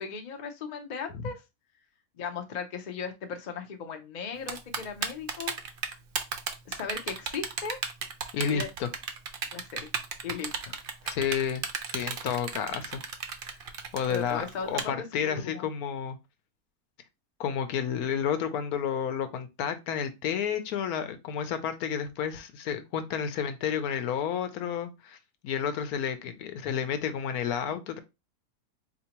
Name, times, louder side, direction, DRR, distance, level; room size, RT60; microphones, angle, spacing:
voice 1, 0.0-1.4 2.1-5.5 6.7-7.8 8.5-8.7 9.5-9.9 10.2-10.8 14.1-15.7, left 5 dB, 55° left, 0.5 m, -37 dB
Typing, 4.5-14.8, right 6 dB, 65° right, 0.5 m, -33 dB
voice 2, 8.3-8.9 11.0-13.0 13.9-16.2 17.4-25.2 25.4-28.0, left 8 dB, 80° left, 1.1 m, -31 dB
4.1 x 2.7 x 2.8 m
omnidirectional pair, 1.6 m